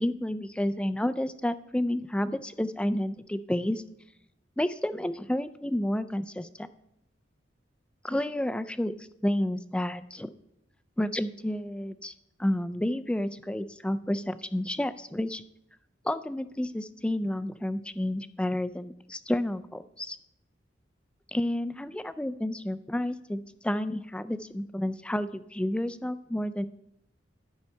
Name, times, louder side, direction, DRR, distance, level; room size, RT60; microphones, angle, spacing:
voice 1, 0.0-3.8 4.6-6.7 8.0-10.3 11.0-12.1 12.4-15.4 16.0-20.2 21.3-26.7, left 1 dB, 5° left, 12 dB, 0.3 m, -30 dB
12.5 x 5.7 x 4.4 m, 0.81 s
head